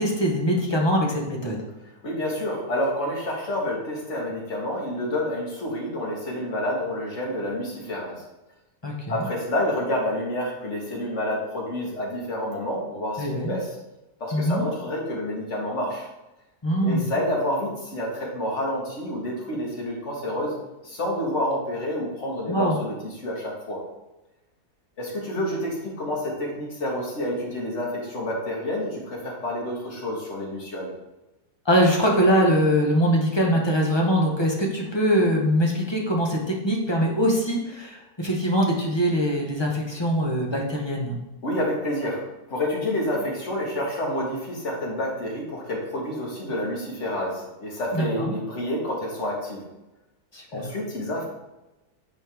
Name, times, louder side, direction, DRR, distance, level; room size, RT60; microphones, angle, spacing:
voice 1, 0.0-1.6 8.8-9.3 13.2-13.5 14.3-14.6 16.6-17.0 22.5-22.8 31.6-41.2 47.9-48.3 50.3-50.7, equal, 20° left, -1 dB, 1.0 m, -22 dB
voice 2, 1.8-8.2 9.1-13.8 14.2-16.1 16.8-20.6 20.8-23.8 25.0-30.9 41.4-49.7 50.5-51.2, left 1 dB, 50° left, -2 dB, 2.0 m, -29 dB
9.6 x 4.2 x 3.5 m, 1.0 s
omnidirectional pair, 1.6 m